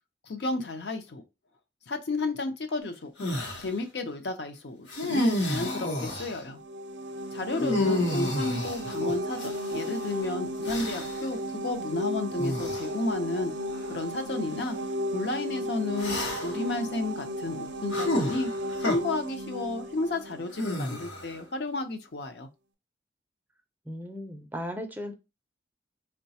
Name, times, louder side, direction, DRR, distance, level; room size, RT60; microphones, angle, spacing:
voice 1, 0.3-1.2 1.9-3.1 3.6-6.6 7.3-13.5 13.9-14.8 15.1-18.5 18.8-22.5, left 2 dB, 65° left, 6 dB, 0.6 m, -32 dB
sound 1, 3.2-3.7 4.9-6.4 7.6-9.9 10.6-11.3 12.4-12.9 13.7-13.9 16.0-16.7 17.9-19.0 20.5-21.4, left 1 dB, 80° left, 0.9 m, -30 dB
sound 2, 6.5-21.2, equal, 70° right, 0.5 m, -34 dB
voice 2, 7.6-8.2 23.9-25.1, equal, 10° right, 4 dB, 0.4 m, -37 dB
3.9 x 2.2 x 2.7 m, 0.25 s
head